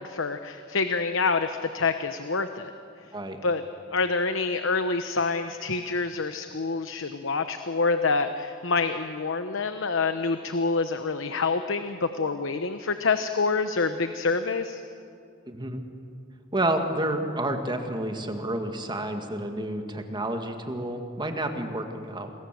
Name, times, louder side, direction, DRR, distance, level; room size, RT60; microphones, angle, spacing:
voice 1, 0.0-2.7 3.4-3.6 3.9-14.8, left 4 dB, 70° left, 9 dB, 1.0 m, -27 dB
voice 2, 15.5-15.8 16.5-22.3, right 1 dB, 20° right, 5 dB, 2.1 m, -30 dB
28.0 x 21.5 x 7.7 m, 2.5 s
head